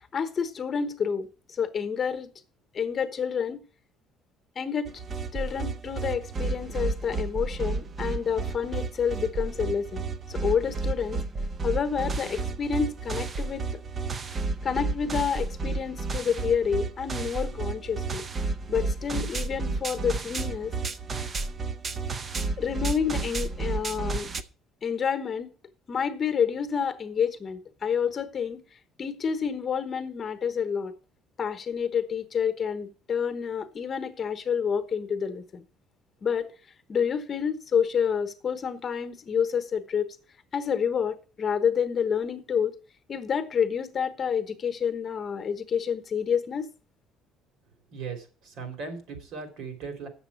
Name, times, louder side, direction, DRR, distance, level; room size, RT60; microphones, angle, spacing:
voice 1, 0.1-2.3 2.7-3.6 4.6-4.9 5.3-11.2 11.6-13.6 14.6-18.2 18.7-20.7 22.6-24.3 24.8-25.5 25.9-28.6 29.0-30.9 31.4-35.6 36.2-36.5 36.9-40.2 40.5-42.8 43.1-46.7, left 7 dB, 35° left, 1.1 m, -28 dB
sound 1, 4.9-24.4, right 3 dB, 30° right, 0.6 m, -32 dB
voice 2, 47.9-50.1, right 5 dB, 70° right, 3.2 m, -38 dB
8.2 x 7.1 x 7.2 m
cardioid pair, 135°, 0 cm